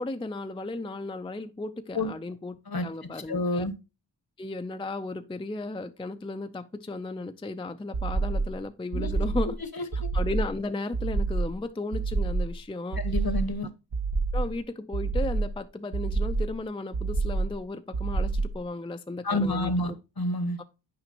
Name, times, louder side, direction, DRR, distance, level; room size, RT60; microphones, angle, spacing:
voice 1, 0.0-2.6 2.8-3.7 4.4-9.6 10.1-13.0 14.3-19.7 20.6-20.7, left 2 dB, 10° left, 0.4 m, -35 dB
voice 2, 3.3-3.7 8.9-9.1 9.7-10.1 13.0-13.7 19.2-20.6, left 1 dB, 55° left, 1.1 m, -29 dB
sound 1, 7.9-8.6 8.9-9.6 9.9-10.6 10.9-11.6 11.9-12.6 12.9-13.6 13.9-14.6 14.9-15.6 15.9-16.6 16.9-17.6 17.9-18.6, right 3 dB, 65° right, 0.9 m, -28 dB
8.8 x 5.1 x 2.9 m
wide cardioid pair, 50°, 44 cm